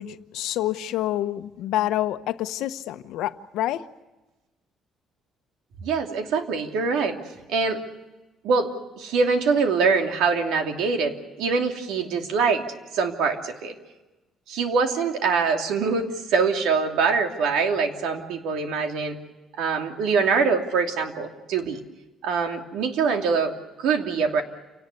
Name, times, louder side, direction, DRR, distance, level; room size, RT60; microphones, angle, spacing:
voice 1, 0.0-3.8, left 13 dB, 80° left, 1.0 m, -27 dB
voice 2, 5.8-7.2 7.5-7.8 8.4-12.6 12.9-13.7 14.5-19.2 19.6-21.8 22.2-24.4, right 5 dB, 90° right, 2.8 m, -24 dB
29.0 x 18.5 x 8.3 m
cardioid pair, 160°, 0 cm